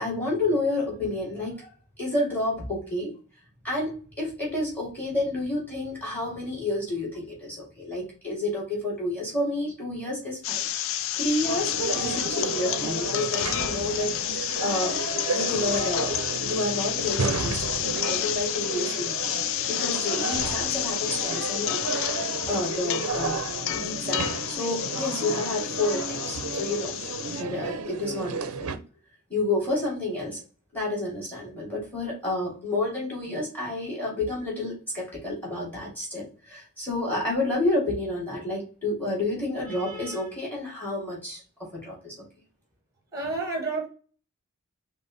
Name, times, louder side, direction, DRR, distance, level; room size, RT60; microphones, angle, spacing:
voice 1, 0.0-1.7 2.0-3.1 3.6-15.0 15.3-16.1 16.4-19.2 19.7-21.8 22.1-22.2 22.5-23.4 23.7-26.9 27.4-28.8 29.3-30.4 30.7-42.2, left 2 dB, 10° left, 2.4 m, -30 dB
sound 1, 10.4-27.4, left 12 dB, 60° left, 0.3 m, -30 dB
sound 2, 11.4-28.8, right 4 dB, 75° right, 0.5 m, -32 dB
voice 2, 43.1-43.9, right 3 dB, 15° right, 1.2 m, -29 dB
5.1 x 2.1 x 4.0 m
head